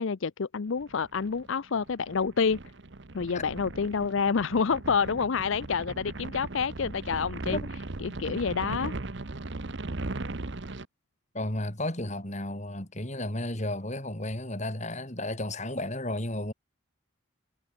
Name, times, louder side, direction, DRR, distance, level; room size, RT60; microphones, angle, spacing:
voice 1, 0.0-2.6 3.1-7.6 8.0-8.9, left 5 dB, 65° left, 0.5 m, -28 dB
sound 1, 0.8-10.9, right 2 dB, 55° right, 1.1 m, -38 dB
voice 2, 11.3-16.5, left 1 dB, 35° left, 3.9 m, -33 dB
head